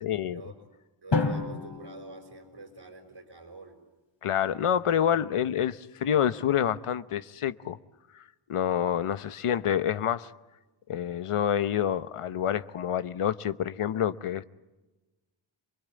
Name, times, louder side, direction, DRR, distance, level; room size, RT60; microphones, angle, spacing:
voice 1, 0.0-0.4 4.2-7.8 8.1-10.3 10.9-14.4, left 9 dB, 90° left, 0.9 m, -27 dB
voice 2, 1.0-3.8, right 3 dB, 60° right, 5.5 m, -46 dB
Drum, 1.1-3.2, left 4 dB, 55° left, 3.2 m, -31 dB
27.5 x 22.5 x 9.5 m
cardioid pair, 55°, 50 cm